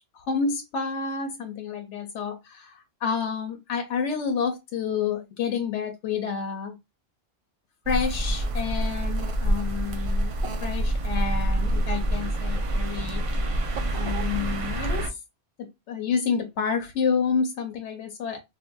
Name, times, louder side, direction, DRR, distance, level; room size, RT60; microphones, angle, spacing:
voice 1, 0.1-6.8 7.9-10.3 10.6-13.2 13.9-15.2 15.6-18.4, left 6 dB, 85° left, 0.9 m, -29 dB
sound 1, 7.9-15.1, right 1 dB, 60° right, 0.3 m, -26 dB
3.4 x 2.4 x 2.2 m
omnidirectional pair, 1.2 m